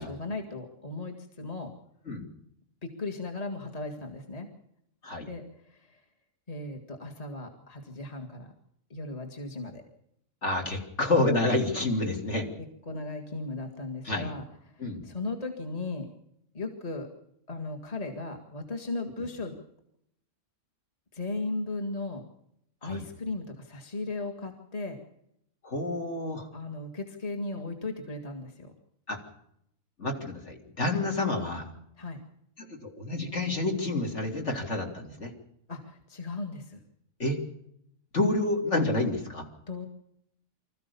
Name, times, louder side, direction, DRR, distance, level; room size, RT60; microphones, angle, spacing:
voice 1, 0.0-1.7 2.8-4.5 5.3-6.0 6.5-8.5 8.9-9.8 12.6-16.1 16.5-17.1 17.5-19.6 21.1-22.2 22.8-25.0 26.5-28.7 32.0-32.2 35.7-36.8 39.7-39.9, left 3 dB, 25° left, 4 dB, 2.3 m, -36 dB
voice 2, 10.4-12.5 14.0-14.3 14.8-15.0 22.8-23.0 25.6-26.5 29.1-29.2 30.0-31.7 32.6-35.3 37.2-37.4 38.1-39.5, left 2 dB, 55° left, 2 dB, 3.6 m, -29 dB
25.5 x 14.5 x 7.0 m, 0.74 s
omnidirectional pair, 1.4 m